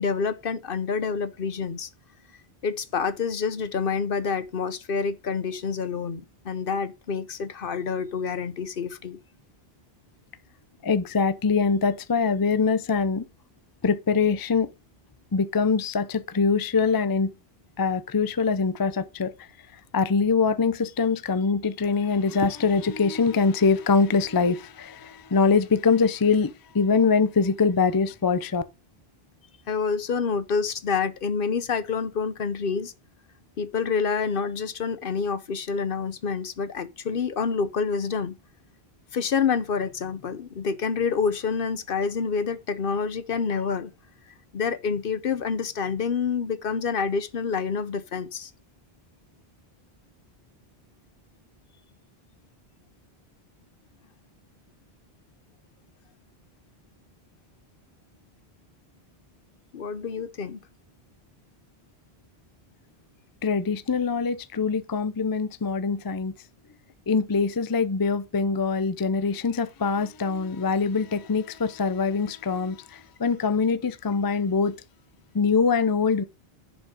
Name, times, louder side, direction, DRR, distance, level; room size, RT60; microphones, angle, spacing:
voice 1, 0.0-1.9 2.6-9.2 29.7-32.9 33.6-38.3 39.1-43.9 44.5-48.5 59.7-60.6, left 5 dB, 60° left, 1.0 m, -27 dB
voice 2, 10.8-13.3 13.8-14.7 15.3-17.3 17.8-19.5 19.9-28.6 63.4-66.3 67.1-74.7 75.3-76.2, left 5 dB, 30° left, 0.5 m, -23 dB
10.5 x 5.2 x 4.9 m
omnidirectional pair, 1.1 m